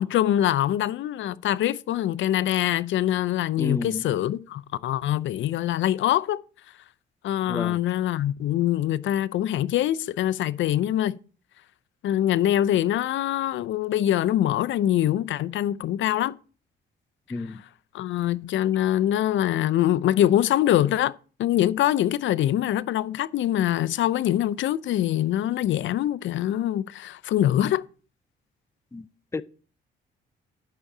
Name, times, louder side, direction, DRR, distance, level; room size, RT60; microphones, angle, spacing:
voice 1, 0.0-6.4 7.2-11.2 12.0-16.4 17.9-21.1 21.4-27.8, left 12 dB, 75° left, 0.6 m, -24 dB
voice 2, 3.6-4.0 7.5-7.8 17.3-17.6 28.9-29.1 29.3-29.4, left 3 dB, 15° left, 0.6 m, -31 dB
11.5 x 6.6 x 4.9 m
cardioid pair, 90°, 20 cm